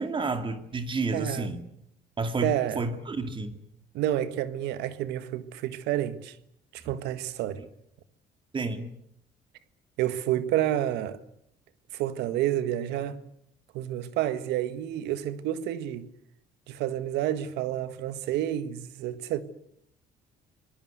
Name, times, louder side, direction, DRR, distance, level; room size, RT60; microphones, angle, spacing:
voice 1, 0.0-1.6 2.2-3.6 6.8-6.9 8.5-8.9, right 3 dB, 30° right, 2.3 m, -30 dB
voice 2, 1.1-1.5 2.4-3.0 3.9-6.4 6.7-7.6 10.0-11.2 11.9-13.2 13.7-16.1 16.7-19.4, right 12 dB, 90° right, 1.7 m, -29 dB
26.0 x 21.0 x 8.1 m
cardioid pair, 110°, 17 cm